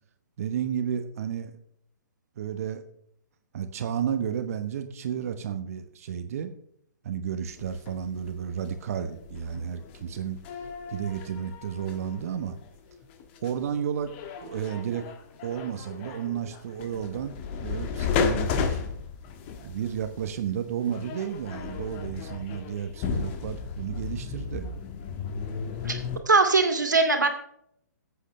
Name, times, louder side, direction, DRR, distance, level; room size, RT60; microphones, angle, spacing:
voice 1, 0.4-1.5 2.4-2.8 3.5-6.5 7.0-12.6 13.4-15.1 15.4-18.8 19.6-24.7, right 8 dB, 55° right, 8 dB, 1.2 m, -32 dB
sound 1, 7.5-13.7 14.1-26.2, left 6 dB, 40° left, 1.5 m, -34 dB
voice 2, 26.3-27.3, right 3 dB, 85° right, 4 dB, 2.3 m, -21 dB
14.5 x 8.3 x 3.3 m, 0.69 s
figure-of-eight pair, 130°, 10 cm